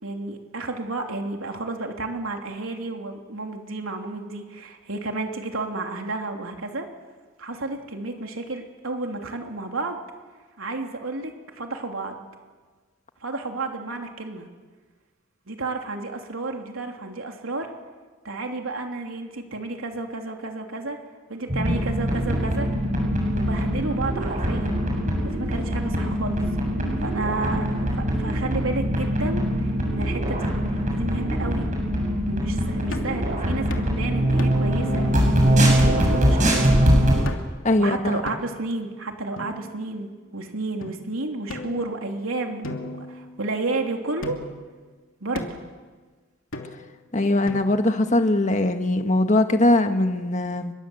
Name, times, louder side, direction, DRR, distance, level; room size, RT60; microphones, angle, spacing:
voice 1, 0.0-6.9 7.4-10.0 10.6-12.2 13.2-14.5 15.5-17.7 18.2-21.0 21.3-22.7 23.3-24.7 25.2-26.4 27.0-30.5 30.9-31.7 32.3-35.2 35.7-36.6 37.8-44.4 45.2-45.6, right 2 dB, 80° right, 3 dB, 3.3 m, -31 dB
sound 1, 21.5-37.2, equal, 35° right, 7.6 m, -22 dB
sound 2, 32.9-33.2 33.7-33.9 34.4-34.8 35.2-35.3 35.8-36.0 36.5-36.8 37.2-37.6 38.2-38.7 39.4-40.1 40.8-40.9 41.5-42.2 42.6-43.7 44.2-44.7 45.3-45.7 46.5-47.0 47.5-48.0, left 2 dB, 70° left, 2.9 m, -37 dB
voice 2, 37.6-38.2 47.1-50.7, left 1 dB, 35° left, 6 dB, 1.7 m, -21 dB
29.5 x 22.5 x 8.1 m, 1.4 s
head